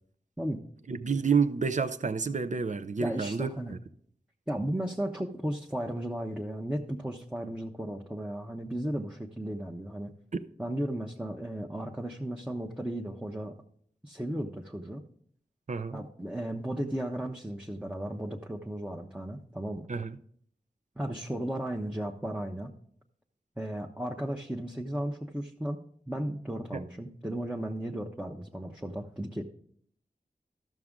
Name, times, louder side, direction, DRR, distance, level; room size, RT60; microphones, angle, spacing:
voice 1, 0.9-3.8 15.7-16.0 19.9-20.2 26.7-26.8, right 5 dB, 50° right, 0.6 m, -29 dB
voice 2, 3.0-3.7 4.5-10.1 10.6-13.5 14.0-15.0 15.9-19.9 21.0-22.7 23.6-25.8 26.1-29.4, right 1 dB, 5° right, 0.8 m, -35 dB
13.0 x 6.1 x 3.7 m
cardioid pair, 45°, 16 cm